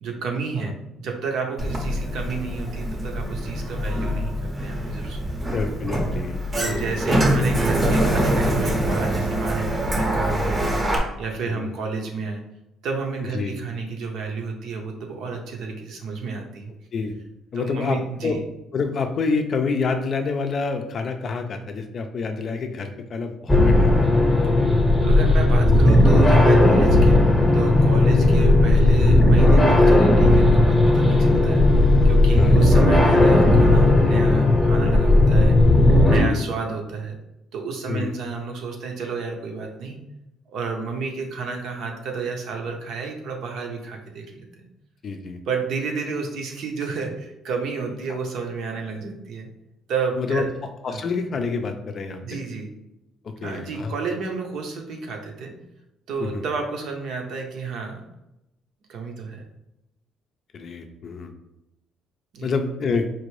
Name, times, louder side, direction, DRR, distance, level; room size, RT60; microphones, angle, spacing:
voice 1, 0.0-5.5 6.6-10.8 11.2-12.4 12.8-16.7 17.5-18.4 25.0-31.7 32.0-35.6 36.1-37.2 37.5-40.0 40.5-44.7 45.5-49.5 49.9-50.5 50.9-51.0 52.2-52.7 53.4-55.6 56.1-58.0 58.9-59.5 62.3-62.5, right 4 dB, 65° right, 2 dB, 0.7 m, -31 dB
Sliding door, 1.6-11.0, right 1 dB, 20° right, 0.7 m, -24 dB
voice 2, 5.5-6.4 6.6-6.9 11.5-11.7 13.3-13.5 16.9-17.1 17.5-18.4 18.7-24.1 28.2-28.3 31.5-31.8 32.4-32.6 36.1-36.4 37.9-38.2 45.0-45.4 48.1-48.2 50.2-50.4 50.8-52.4 53.4-53.9 56.2-56.5 60.5-61.3 62.4-63.1, left 4 dB, 45° left, 6 dB, 0.4 m, -28 dB
sound 1, 23.5-36.2, left 1 dB, 10° left, 0.8 m, -15 dB
4.4 x 2.5 x 3.2 m, 0.91 s
cardioid pair, 130°, 0 cm